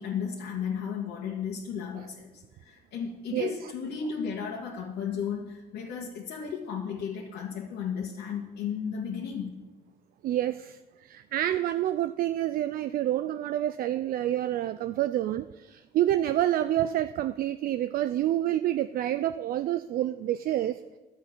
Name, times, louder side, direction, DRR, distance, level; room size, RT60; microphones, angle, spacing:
voice 1, 0.0-9.5, left 7 dB, 75° left, -3 dB, 1.6 m, -34 dB
voice 2, 10.2-20.8, right 12 dB, 60° right, 12 dB, 0.4 m, -28 dB
11.0 x 8.2 x 6.1 m, 1.2 s
cardioid pair, 110°, 17 cm